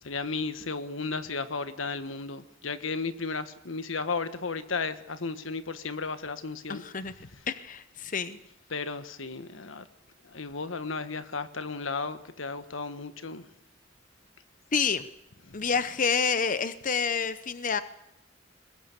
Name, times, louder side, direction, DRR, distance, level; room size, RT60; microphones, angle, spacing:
voice 1, 0.0-6.8 7.2-7.4 8.7-9.9 10.2-13.5 15.5-15.6, left 4 dB, 80° left, 11 dB, 1.4 m, -34 dB
voice 2, 6.7-7.1 7.5-8.4 14.7-15.1 15.5-17.8, left 5 dB, 45° left, 12 dB, 0.8 m, -28 dB
21.0 x 20.5 x 8.2 m, 0.78 s
head